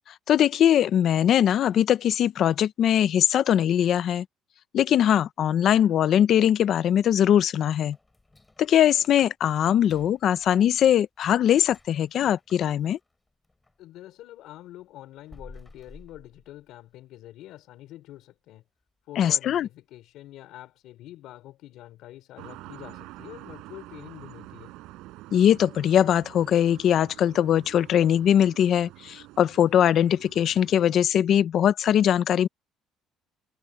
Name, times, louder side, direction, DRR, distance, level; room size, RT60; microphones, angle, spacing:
voice 1, 0.3-4.2 4.7-8.0 8.6-13.0 19.2-19.7 25.3-32.5, left 10 dB, 45° left, 0.6 m, -21 dB
sound 1, 7.9-13.9 14.2-17.1 17.4-17.5 18.0-18.1 18.7-19.0 19.3-19.4 19.9-20.0, left 2 dB, 10° left, 4.3 m, -54 dB
voice 2, 13.8-18.6 19.1-24.7, left 14 dB, 65° left, 4.5 m, -46 dB
sound 2, 22.4-31.0, right 19 dB, 85° right, 6.0 m, -47 dB
cardioid pair, 170°, 0 cm